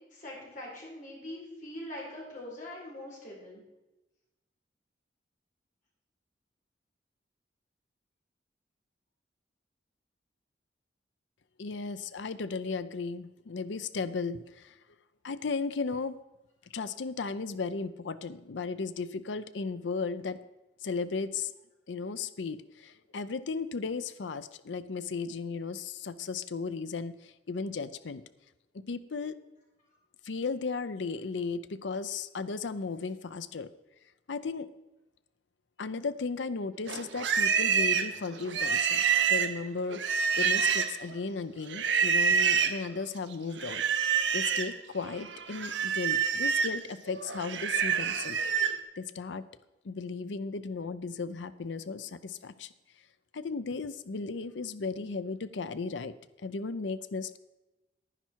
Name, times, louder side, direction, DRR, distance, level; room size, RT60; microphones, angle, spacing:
voice 1, 0.1-3.6, left 1 dB, 45° left, -4 dB, 4.5 m, -43 dB
voice 2, 11.6-14.8 15.2-16.2 16.7-20.4 20.8-21.5 21.9-28.2 28.7-29.4 30.2-33.7 34.3-34.7 35.8-39.0 39.3-43.8 44.3-48.4 49.0-49.4 49.8-52.7 53.3-56.1 56.4-57.4, left 4 dB, 85° left, 13 dB, 0.6 m, -35 dB
Livestock farm animals working animals, 36.9-41.1 41.7-42.8 43.6-44.7 45.1-48.8, right 6 dB, 85° right, 0.8 m, -27 dB
10.5 x 10.0 x 4.5 m, 1.0 s
head